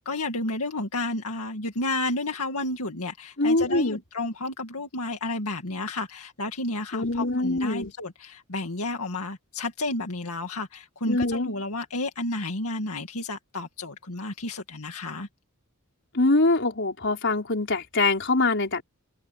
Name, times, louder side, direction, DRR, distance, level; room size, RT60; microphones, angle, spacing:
voice 1, 0.0-15.3, left 2 dB, 80° left, 2.2 m, -31 dB
voice 2, 3.4-4.0 6.9-7.9 11.1-11.5 16.1-18.8, left 2 dB, 55° left, 4.3 m, -23 dB
head